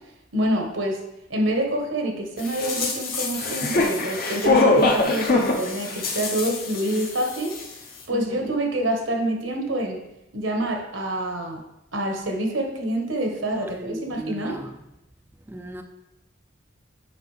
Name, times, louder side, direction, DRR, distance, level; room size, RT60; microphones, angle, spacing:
voice 1, 0.3-1.0 1.3-7.6 7.8-10.0 10.3-11.6 11.9-14.6, right 1 dB, 80° right, 1.2 m, -26 dB
sound 1, 2.4-7.3 7.5-7.6, left 3 dB, 50° left, 0.8 m, -23 dB
voice 2, 8.1-8.5 13.5-14.8 15.5-15.8, right 1 dB, 10° right, 0.3 m, -36 dB
7.4 x 5.0 x 3.3 m
head